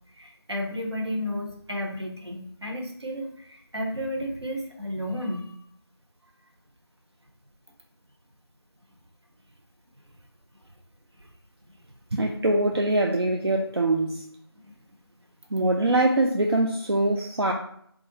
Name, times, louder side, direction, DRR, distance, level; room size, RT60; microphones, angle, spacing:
voice 1, 0.1-5.6 11.2-11.3 14.5-14.7, equal, 90° right, 1 dB, 0.8 m, -32 dB
voice 2, 12.1-14.2 15.5-17.5, right 2 dB, 70° right, 1 dB, 0.4 m, -23 dB
3.4 x 2.4 x 2.9 m, 0.67 s
figure-of-eight pair, 175°, 14 cm